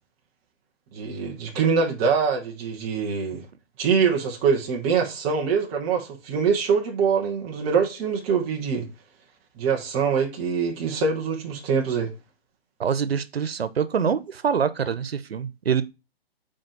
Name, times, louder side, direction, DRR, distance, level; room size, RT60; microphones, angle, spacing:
voice 1, 0.9-3.5 3.8-8.9 9.6-12.1, right 6 dB, 5° right, 0.3 m, -24 dB
voice 2, 12.8-15.8, right 7 dB, 75° right, 0.9 m, -25 dB
5.1 x 4.4 x 6.1 m
figure-of-eight pair, 135°, 31 cm